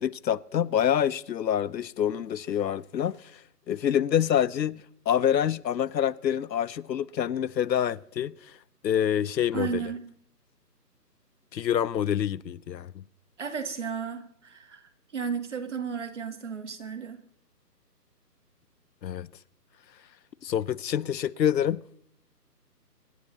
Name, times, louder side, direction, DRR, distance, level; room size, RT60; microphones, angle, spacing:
voice 1, 0.0-3.2 3.7-8.3 8.8-9.8 11.5-12.9 19.0-19.3 20.4-21.8, left 9 dB, 85° left, 0.7 m, -26 dB
voice 2, 9.5-10.1 13.4-14.8 15.1-17.2, right 6 dB, 45° right, 1.2 m, -33 dB
24.5 x 11.0 x 2.9 m
hypercardioid pair, 165°, 49 cm